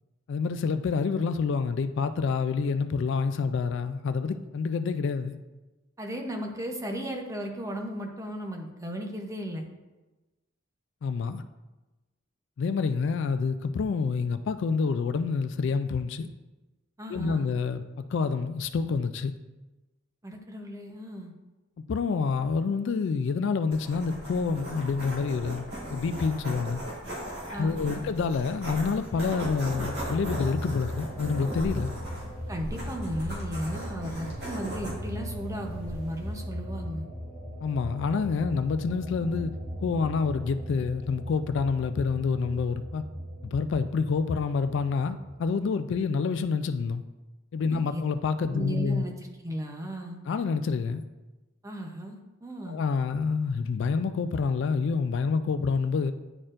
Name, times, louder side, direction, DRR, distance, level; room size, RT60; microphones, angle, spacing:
voice 1, 0.3-5.4 11.0-11.4 12.6-16.3 17.1-17.8 18.1-19.3 21.9-26.8 27.6-31.9 37.6-39.5 39.8-43.0 43.4-47.0 47.5-49.0 50.3-51.0 52.7-56.1, left 5 dB, 60° left, 10 dB, 0.3 m, -27 dB
voice 2, 6.0-9.7 17.0-17.5 20.2-21.3 27.5-28.0 32.5-37.1 47.7-48.0 48.5-49.1 49.4-50.2 51.6-52.8, right 1 dB, 15° right, 2 dB, 0.7 m, -35 dB
sound 1, 23.7-36.4, equal, 50° right, 2.2 m, -38 dB
sound 2, 29.7-45.5, equal, ahead, 1.2 m, -39 dB
9.9 x 4.3 x 2.5 m, 1.1 s
head